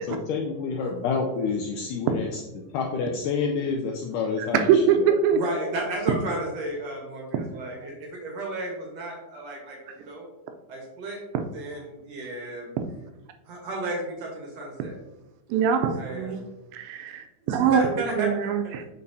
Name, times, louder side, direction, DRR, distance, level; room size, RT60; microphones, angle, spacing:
voice 1, 0.1-2.4 2.7-4.7, left 5 dB, 90° left, 1 dB, 1.8 m, -28 dB
voice 2, 4.4-5.4 15.5-16.4 16.7-18.8, right 7 dB, 85° right, 6 dB, 2.4 m, -23 dB
voice 3, 5.3-10.2 10.7-11.2 11.5-12.7 13.5-15.0 15.7-16.4 17.4-18.7, right 1 dB, 65° right, -1 dB, 1.8 m, -33 dB
8.6 x 4.1 x 2.7 m, 1.0 s
omnidirectional pair, 4.3 m